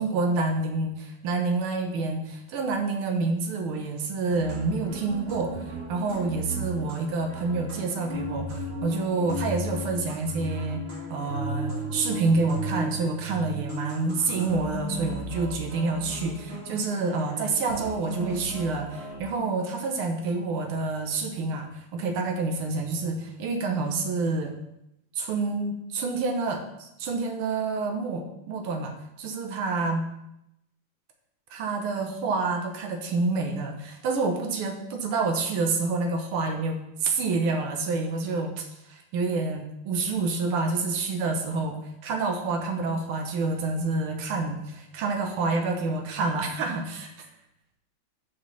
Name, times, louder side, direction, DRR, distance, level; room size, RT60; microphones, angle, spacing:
voice 1, 0.0-10.8 11.1-24.5 25.1-30.0 31.5-41.8 42.0-47.3, right 3 dB, 90° right, 4 dB, 1.7 m, -28 dB
sound 1, 4.3-19.2, right 1 dB, 35° right, 1.3 m, -35 dB
5.0 x 4.0 x 5.5 m, 0.83 s
omnidirectional pair, 2.3 m